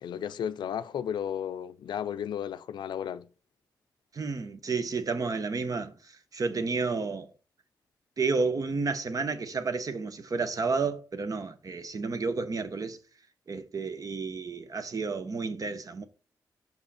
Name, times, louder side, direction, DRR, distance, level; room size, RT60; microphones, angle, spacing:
voice 1, 0.0-3.3, left 9 dB, 85° left, 0.4 m, -34 dB
voice 2, 4.1-7.3 8.2-13.0 13.5-16.0, right 4 dB, 50° right, 1.0 m, -31 dB
6.0 x 5.5 x 4.2 m
cardioid pair, 60°, 8 cm